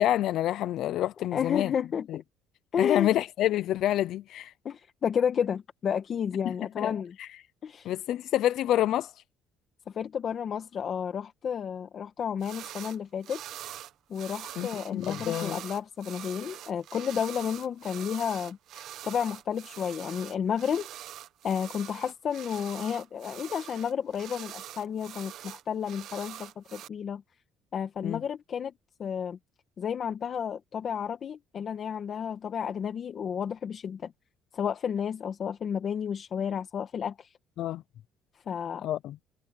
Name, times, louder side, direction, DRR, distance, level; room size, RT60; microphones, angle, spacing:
voice 1, 0.0-1.7 2.1-2.2 2.8-4.5 6.4-6.9 7.2-7.3 7.8-9.1 14.6-15.6 28.0-28.2 37.6-37.8 38.8-39.2, left 13 dB, 70° left, 0.7 m, -28 dB
voice 2, 1.3-2.1 2.7-3.1 4.6-7.1 7.6-7.9 9.9-13.4 14.1-20.9 21.4-27.2 27.7-28.7 29.0-29.4 29.8-34.1 34.5-37.3 38.5-38.9, left 7 dB, 45° left, 2.0 m, -31 dB
sound 1, 12.4-13.0 13.2-26.9, right 12 dB, 65° right, 1.6 m, -44 dB
cardioid pair, 110°, 0 cm